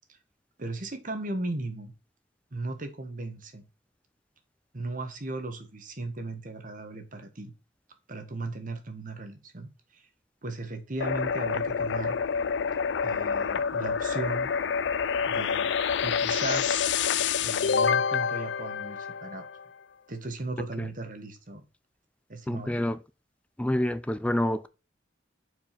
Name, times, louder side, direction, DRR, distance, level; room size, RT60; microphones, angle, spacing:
voice 1, 0.6-1.9 2.5-3.6 4.7-7.5 8.1-10.0 10.4-12.2 13.0-14.5 15.3-15.7 16.0-16.8 17.4-19.5 20.1-21.6 22.3-22.9, right 2 dB, 45° right, 1.3 m, -36 dB
sound 1, 11.0-19.7, left 6 dB, 70° left, 0.4 m, -27 dB
voice 2, 22.5-23.0 23.6-24.7, left 1 dB, 5° left, 0.4 m, -27 dB
4.8 x 4.7 x 5.7 m
head